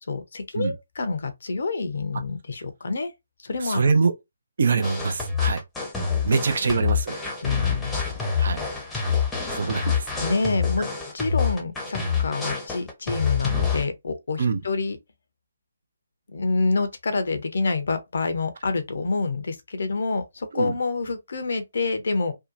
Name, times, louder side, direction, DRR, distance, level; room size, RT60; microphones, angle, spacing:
voice 1, 0.1-3.1 3.4-3.9 6.3-6.4 7.4-8.0 10.2-10.9 11.1-15.0 16.3-22.3, left 3 dB, 55° left, 0.6 m, -27 dB
voice 2, 3.6-4.1 4.6-5.6 6.2-7.2 8.4-8.6 9.5-10.1 14.4-14.6 20.5-20.7, right 4 dB, 55° right, 0.5 m, -24 dB
sound 1, 4.8-13.8, left 6 dB, 5° left, 0.7 m, -26 dB
2.7 x 2.2 x 2.4 m
figure-of-eight pair, 140°, 0 cm